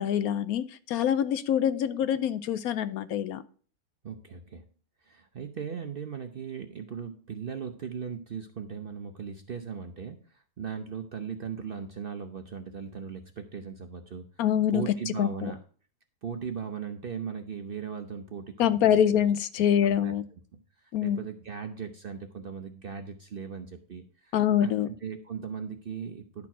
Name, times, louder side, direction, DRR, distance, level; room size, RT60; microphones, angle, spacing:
voice 1, 0.0-3.4 14.4-15.5 18.6-20.2 20.9-21.2 24.3-24.9, left 10 dB, 75° left, 14 dB, 1.0 m, -25 dB
voice 2, 4.0-4.6 5.0-14.3 14.7-15.6 16.2-19.2 19.8-20.1 20.8-24.3 24.6-26.5, right 6 dB, 50° right, 6 dB, 0.7 m, -38 dB
11.0 x 4.4 x 5.9 m, 0.43 s
omnidirectional pair, 1.7 m